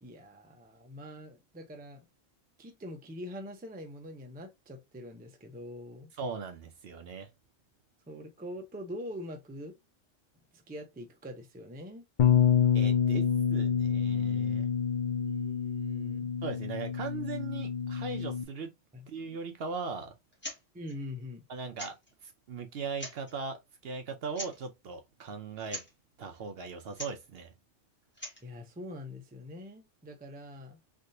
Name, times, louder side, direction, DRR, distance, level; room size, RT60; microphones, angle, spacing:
voice 1, 0.0-2.0 2.6-6.1 8.1-9.7 10.5-12.0 15.1-16.3 18.9-19.1 20.7-21.4 28.4-30.8, left 1 dB, 15° right, 0.4 m, -44 dB
voice 2, 6.1-7.3 12.7-14.7 16.4-18.7 19.1-20.1 21.5-21.9 22.2-23.6 23.8-25.8 26.2-27.5, right 5 dB, 60° right, 0.7 m, -39 dB
Bass guitar, 12.2-18.4, left 8 dB, 65° left, 0.5 m, -27 dB
sound 1, 20.3-20.6 20.9-21.0 21.8-22.1 22.8-23.3 24.3-24.7 25.7-25.9 26.9-27.2 28.0-28.5, equal, 10° left, 1.0 m, -41 dB
3.4 x 2.7 x 2.6 m
omnidirectional pair, 1.3 m